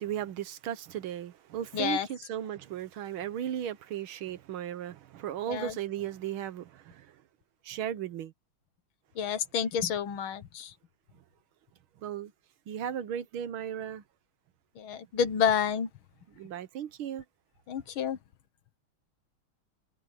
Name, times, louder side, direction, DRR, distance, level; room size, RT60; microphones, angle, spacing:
voice 1, 0.0-7.2 7.6-8.3 12.0-12.3 12.7-14.0 16.3-17.2, right 10 dB, 75° right, 1.8 m, -36 dB
voice 2, 1.7-2.1 5.5-5.7 9.2-10.7 14.8-15.9 17.7-18.2, left 7 dB, 70° left, 2.0 m, -29 dB
omnidirectional pair, 2.4 m